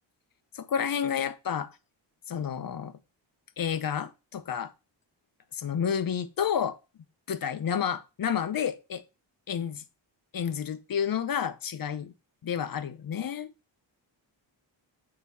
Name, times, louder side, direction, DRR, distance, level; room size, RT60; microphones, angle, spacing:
voice 1, 0.5-1.7 2.3-2.9 3.6-4.7 5.6-6.8 7.3-9.0 9.5-9.8 10.3-12.1 12.4-13.5, left 8 dB, 50° left, 0.6 m, -30 dB
8.3 x 3.0 x 4.0 m
wide cardioid pair, 135°, 45 cm